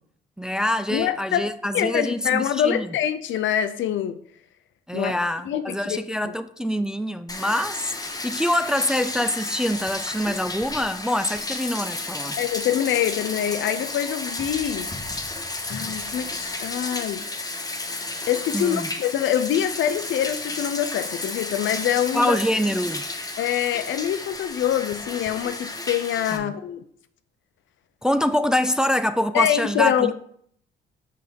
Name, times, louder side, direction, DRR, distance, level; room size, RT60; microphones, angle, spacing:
voice 1, 0.4-2.9 4.9-12.4 18.5-18.9 22.1-23.1 26.3-26.5 28.0-30.1, left 1 dB, 5° right, 0.4 m, -25 dB
voice 2, 0.9-4.2 4.9-5.2 5.4-6.0 6.2-6.3 12.4-14.9 15.7-17.2 18.3-22.4 23.4-26.8 29.3-30.1, left 10 dB, 75° left, 0.6 m, -25 dB
Bathtub (filling or washing), 7.3-26.4, left 2 dB, 20° left, 0.9 m, -32 dB
6.3 x 4.3 x 5.1 m
cardioid pair, 90°, 20 cm